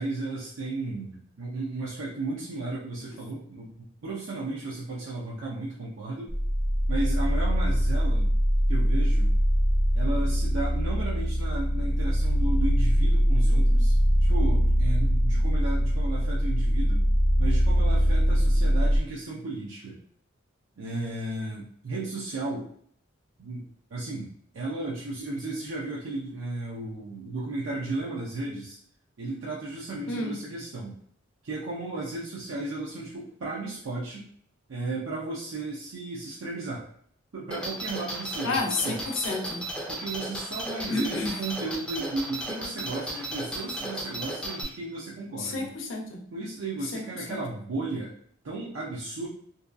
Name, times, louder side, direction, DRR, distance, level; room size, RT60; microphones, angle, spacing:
voice 1, 0.0-6.3 6.9-8.3 8.7-9.3 9.9-14.0 14.2-17.0 17.4-20.0 20.8-22.7 23.4-28.8 29.2-31.0 31.4-34.2 34.7-36.9 37.3-38.6 38.8-39.0 39.9-45.7 46.3-48.1 48.4-49.3, right 2 dB, 90° right, -6 dB, 0.5 m, -34 dB
sound 1, 6.3-19.0, equal, 65° right, 0.8 m, -22 dB
sound 2, 37.5-44.6, right 1 dB, 5° left, 0.4 m, -35 dB
voice 2, 38.4-39.6 40.9-41.4 45.4-46.2 46.9-47.4, left 3 dB, 70° left, 1 dB, 0.6 m, -30 dB
2.6 x 2.2 x 2.4 m, 0.63 s
head